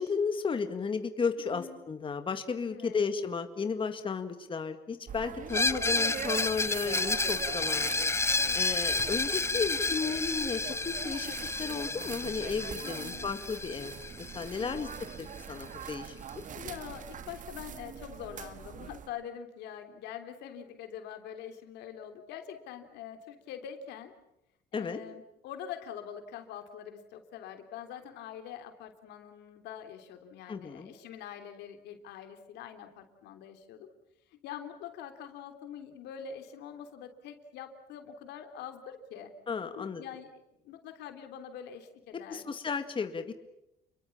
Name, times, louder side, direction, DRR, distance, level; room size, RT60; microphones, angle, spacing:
voice 1, 0.0-8.0 8.5-11.3 11.6-14.9 15.2-16.2 24.7-25.0 30.5-30.9 39.5-40.0 42.3-43.3, left 5 dB, 30° left, 8 dB, 2.0 m, -34 dB
voice 2, 1.5-1.8 2.7-3.1 8.5-8.8 12.8-13.3 14.6-14.9 16.6-24.1 24.7-33.9 34.3-39.3 39.8-40.3 40.6-42.4, left 9 dB, 85° left, 7 dB, 3.3 m, -44 dB
sound 1, 5.1-19.1, right 8 dB, 50° right, 1.7 m, -42 dB
Screech, 5.5-15.1, left 3 dB, 15° left, 0.9 m, -31 dB
29.5 x 22.5 x 7.3 m, 0.86 s
cardioid pair, 110°, 17 cm